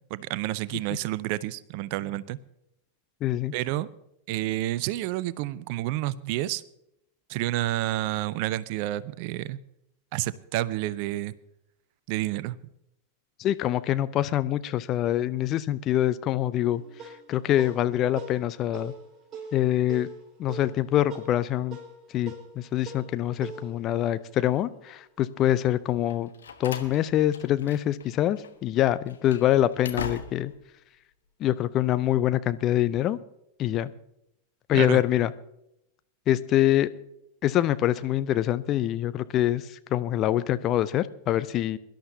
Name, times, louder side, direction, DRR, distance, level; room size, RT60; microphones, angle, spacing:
voice 1, 0.1-2.4 3.5-3.9 4.3-6.6 7.3-9.6 10.1-11.3 12.1-12.6 34.7-35.0, right 15 dB, 45° right, 19 dB, 0.5 m, -29 dB
voice 2, 3.2-3.5 13.4-16.8 17.3-18.9 19.5-20.1 20.4-21.8 22.1-26.3 26.6-30.5 31.4-33.2 33.6-33.9 34.7-35.3 36.3-36.9 37.4-39.6 39.9-41.8, left 12 dB, 35° left, 14 dB, 0.5 m, -25 dB
sound 1, 16.6-25.4, right 3 dB, 20° right, 4.4 m, -44 dB
Slam, 26.1-28.1 28.4-28.5 29.0-30.6, left 6 dB, 65° left, 1.3 m, -39 dB
23.0 x 11.5 x 2.8 m, 0.81 s
figure-of-eight pair, 90°, 0 cm